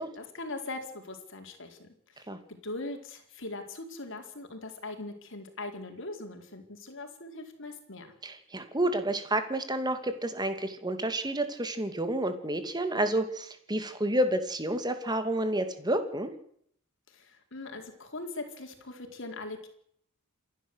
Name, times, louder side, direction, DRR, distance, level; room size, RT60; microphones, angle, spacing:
voice 1, 0.0-2.3 2.6-8.1 17.1-19.7, left 2 dB, 65° left, 4 dB, 4.4 m, -41 dB
voice 2, 8.2-16.3, right 1 dB, 20° right, 8 dB, 2.6 m, -30 dB
28.0 x 11.5 x 8.1 m, 0.66 s
head